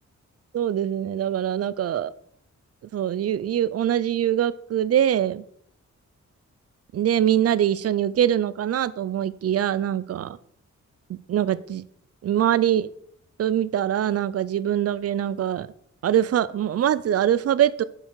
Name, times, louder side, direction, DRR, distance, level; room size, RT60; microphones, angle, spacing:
voice 1, 0.5-2.1 2.9-5.4 6.9-10.4 11.1-11.8 12.2-12.9 13.4-15.7 16.0-17.8, right 10 dB, 55° right, 18 dB, 0.4 m, -23 dB
7.5 x 6.5 x 4.7 m, 0.67 s
wide cardioid pair, 165°, 29 cm